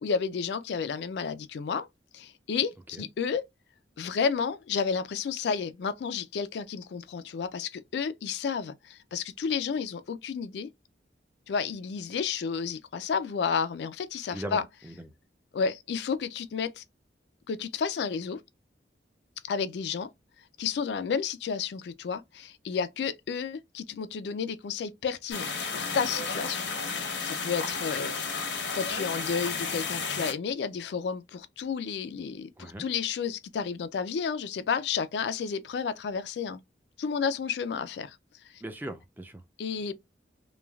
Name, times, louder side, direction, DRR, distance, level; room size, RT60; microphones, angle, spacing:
voice 1, 0.0-1.9 2.1-3.4 4.0-10.7 11.5-14.6 15.5-16.8 17.5-18.4 19.5-20.1 20.6-25.5 25.7-28.1 28.7-36.6 37.0-38.2 39.6-39.9, left 6 dB, 70° left, 0.3 m, -31 dB
voice 2, 14.3-15.1 32.6-32.9 38.6-39.4, right 1 dB, 10° right, 0.3 m, -39 dB
sound 1, 25.3-30.3, left 4 dB, 85° left, 0.9 m, -32 dB
3.1 x 2.2 x 2.2 m
head